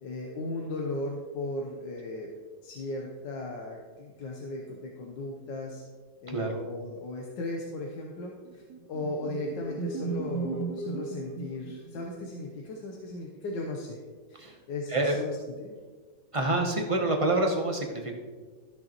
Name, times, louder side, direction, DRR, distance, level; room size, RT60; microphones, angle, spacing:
voice 1, 0.0-2.3 2.6-5.8 6.2-8.6 8.9-14.0 14.3-15.8, left 2 dB, 80° left, 0 dB, 1.6 m, -36 dB
voice 2, 6.3-6.6 14.4-14.6 14.9-15.2 16.3-18.1, right 2 dB, 30° right, 2 dB, 0.6 m, -27 dB
sound 1, 8.4-12.4, right 4 dB, 65° right, 1.1 m, -36 dB
14.0 x 6.5 x 3.0 m, 1.5 s
omnidirectional pair, 1.9 m